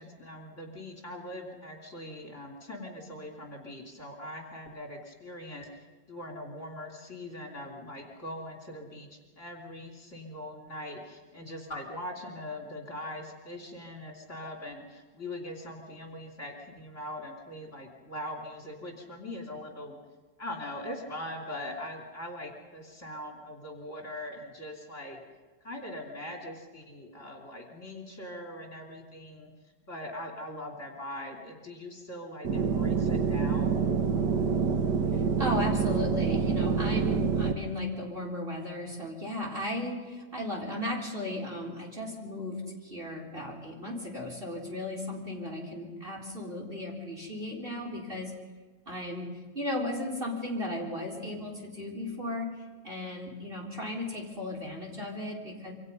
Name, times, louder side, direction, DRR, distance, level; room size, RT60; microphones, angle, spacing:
voice 1, 0.0-20.0 20.4-25.2 25.6-29.5 29.9-33.7, left 1 dB, 40° left, 1 dB, 3.7 m, -41 dB
sound 1, 32.4-37.5, right 6 dB, 65° right, 1.9 m, -26 dB
voice 2, 35.1-48.3 48.9-52.5 52.8-55.7, left 1 dB, 30° right, -1 dB, 4.4 m, -35 dB
27.5 x 25.0 x 5.5 m, 1.4 s
omnidirectional pair, 2.0 m